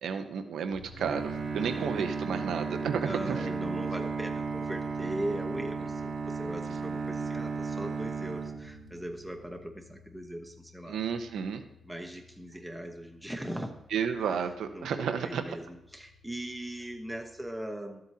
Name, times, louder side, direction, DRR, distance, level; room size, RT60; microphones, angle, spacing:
voice 1, 0.0-3.5 10.9-11.6 13.9-15.6, right 7 dB, 85° right, 7 dB, 0.8 m, -32 dB
sound 1, 0.7-17.4, left 5 dB, 65° left, 1.8 m, -53 dB
Bowed string instrument, 1.0-9.2, right 5 dB, 60° right, 1.2 m, -34 dB
voice 2, 1.6-2.1 3.0-11.0 11.8-13.7 14.3-14.4 14.7-18.0, right 1 dB, 5° right, 2 dB, 0.9 m, -39 dB
12.5 x 7.7 x 2.8 m, 0.87 s
cardioid pair, 100°, 0 cm